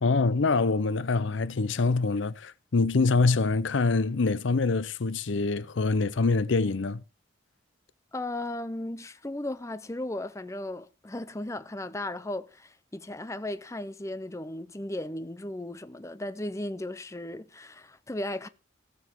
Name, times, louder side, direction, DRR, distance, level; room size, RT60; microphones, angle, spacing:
voice 1, 0.0-7.0, left 3 dB, 75° left, 0.6 m, -25 dB
voice 2, 8.1-18.5, left 1 dB, 15° left, 0.6 m, -36 dB
16.0 x 7.1 x 4.5 m
head